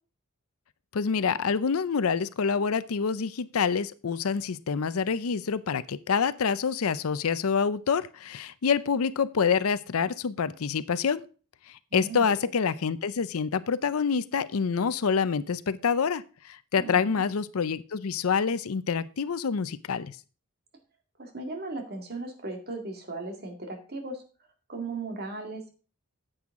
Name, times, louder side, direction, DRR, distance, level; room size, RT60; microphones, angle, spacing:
voice 1, 0.9-11.2 11.7-20.2, left 6 dB, 75° left, 16 dB, 0.5 m, -27 dB
voice 2, 11.9-12.5 16.8-17.3 21.2-24.2 24.7-25.7, right 2 dB, 45° right, 3 dB, 2.0 m, -37 dB
9.8 x 7.9 x 3.6 m, 0.37 s
head